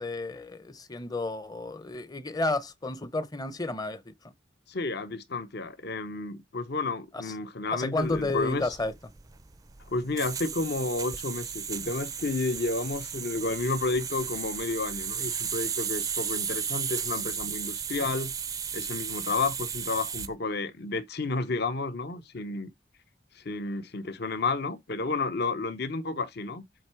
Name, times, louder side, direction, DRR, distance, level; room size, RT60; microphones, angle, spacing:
voice 1, 0.0-4.1 7.7-8.9, left 2 dB, 20° left, 0.7 m, -31 dB
voice 2, 4.7-8.7 9.9-18.3 18.7-22.7 23.3-26.6, left 3 dB, 55° left, 0.9 m, -31 dB
sound 1, 8.0-20.3, right 7 dB, 20° right, 0.4 m, -35 dB
7.9 x 3.4 x 4.4 m
head